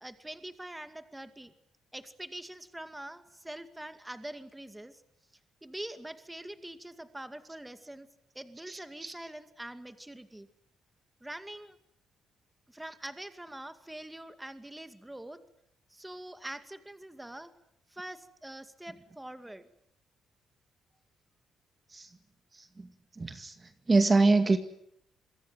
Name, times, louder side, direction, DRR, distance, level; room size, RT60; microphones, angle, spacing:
voice 1, 0.0-1.5 1.9-5.0 5.6-8.1 8.3-10.5 11.2-11.8 12.7-15.4 15.9-17.5 17.9-19.7, right 1 dB, 10° right, 9 dB, 2.3 m, -44 dB
voice 2, 8.7-9.1 21.9-22.1 22.8-22.9 23.2-23.5 23.9-24.6, right 3 dB, 25° right, 8 dB, 2.1 m, -25 dB
27.0 x 22.5 x 9.2 m, 0.74 s
cardioid pair, 90°, 0 cm